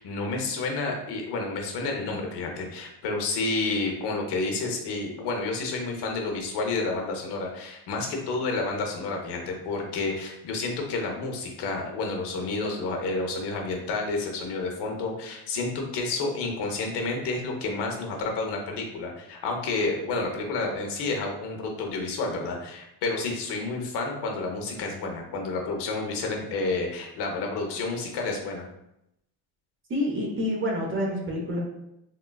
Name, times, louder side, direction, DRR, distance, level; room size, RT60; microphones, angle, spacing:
voice 1, 0.0-28.7, left 3 dB, 85° left, 2 dB, 0.7 m, -30 dB
voice 2, 29.9-31.6, left 1 dB, 30° right, -1 dB, 0.7 m, -28 dB
3.6 x 2.3 x 2.2 m, 0.84 s
cardioid pair, 125°, 40 cm